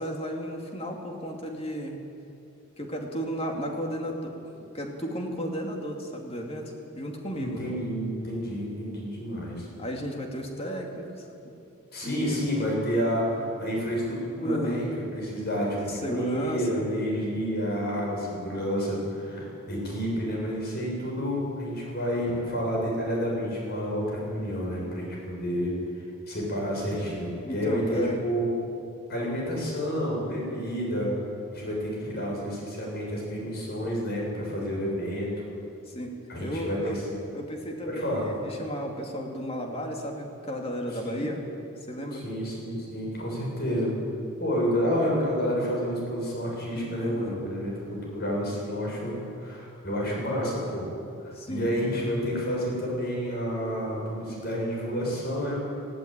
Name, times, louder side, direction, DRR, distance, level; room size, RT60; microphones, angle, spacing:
voice 1, 0.0-2.0 2.8-7.7 9.8-11.3 12.0-12.6 14.4-14.8 15.9-16.9 27.4-28.2 35.9-37.0 37.3-41.4 41.9-42.3 44.6-44.7 47.0-47.4 51.3-51.7, equal, 25° left, 1 dB, 2.6 m, -34 dB
voice 2, 7.3-9.7 11.9-28.5 29.1-31.1 31.5-35.3 36.3-37.0 37.9-38.3 40.9-41.3 42.1-43.9 44.4-50.9 51.2-55.6, equal, 45° left, -2 dB, 7.0 m, -29 dB
19.0 x 16.0 x 9.1 m, 2.6 s
head